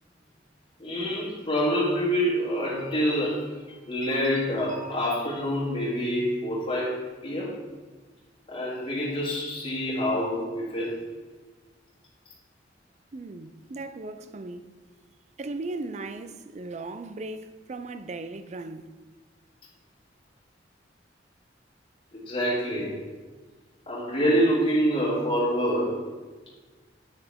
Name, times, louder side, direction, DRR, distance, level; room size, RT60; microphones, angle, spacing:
voice 1, 0.8-7.6 8.5-11.0 22.1-23.0 23.9-26.1, equal, 30° left, 2.0 m, -26 dB
voice 2, 13.1-14.7 15.4-18.9, right 2 dB, 40° right, 0.4 m, -37 dB
8.0 x 6.8 x 3.5 m
head